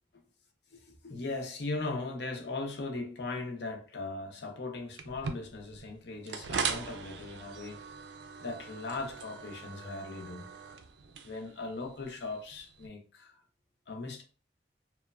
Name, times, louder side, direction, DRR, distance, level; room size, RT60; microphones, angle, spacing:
voice 1, 0.7-7.8 8.4-10.5 11.2-13.4 13.9-14.2, left 3 dB, 75° left, 0.6 m, -39 dB
sound 1, 5.0-12.9, right 5 dB, 80° right, 0.4 m, -40 dB
3.0 x 2.1 x 2.3 m
head